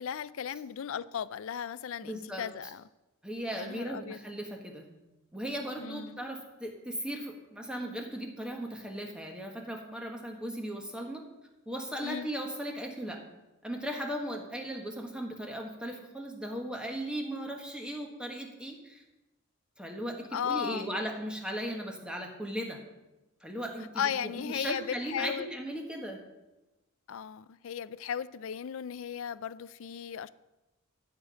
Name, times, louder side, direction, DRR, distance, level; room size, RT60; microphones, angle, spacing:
voice 1, 0.0-2.8 3.5-4.2 5.8-6.2 12.0-12.3 20.3-20.9 24.0-25.5 27.1-30.3, left 8 dB, 65° left, 0.4 m, -36 dB
voice 2, 2.0-2.4 3.2-4.9 5.3-11.2 11.7-13.2 13.6-19.0 19.8-22.8 23.4-26.2, equal, 5° right, 1.4 m, -37 dB
13.5 x 5.3 x 7.7 m
head